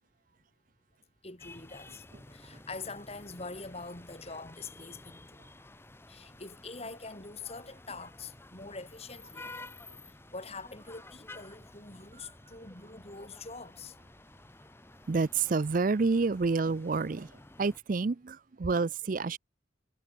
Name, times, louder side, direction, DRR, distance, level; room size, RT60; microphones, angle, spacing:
voice 1, 1.2-2.0 2.3-5.3 6.1-9.4 10.3-13.9, left 3 dB, 30° left, 2.9 m, -44 dB
sound 1, 1.4-17.8, left 2 dB, 10° left, 0.8 m, -52 dB
voice 2, 15.1-17.3 17.6-19.4, right 4 dB, 40° right, 0.5 m, -28 dB
head